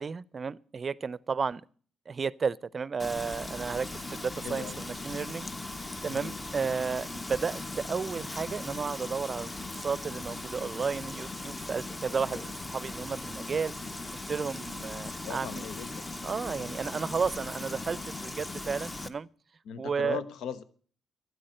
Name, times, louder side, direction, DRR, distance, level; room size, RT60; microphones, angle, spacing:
voice 1, 0.0-1.6 2.1-5.5 6.0-13.7 14.3-15.6 16.2-19.3 19.8-20.2, right 5 dB, 40° right, 0.5 m, -33 dB
Frying (food), 3.0-19.1, left 2 dB, 20° left, 1.1 m, -39 dB
voice 2, 4.4-4.8 6.1-6.4 15.0-16.1 19.6-20.6, left 8 dB, 75° left, 1.1 m, -39 dB
12.5 x 9.4 x 7.8 m
cardioid pair, 90°, 0 cm